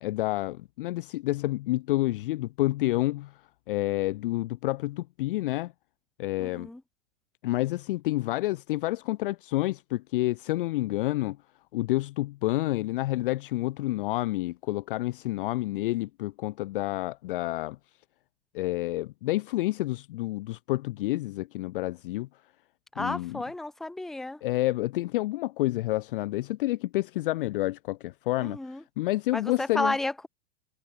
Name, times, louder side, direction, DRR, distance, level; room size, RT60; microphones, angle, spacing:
voice 1, 0.0-3.3 3.7-5.7 6.2-6.7 7.4-11.4 11.7-17.8 18.5-22.3 23.0-23.4 24.4-30.0, left 18 dB, 50° left, 0.4 m, -29 dB
voice 2, 6.4-6.8 23.0-24.4 28.4-28.8 29.3-30.3, left 2 dB, ahead, 0.5 m, -32 dB
figure-of-eight pair, 90°, 34 cm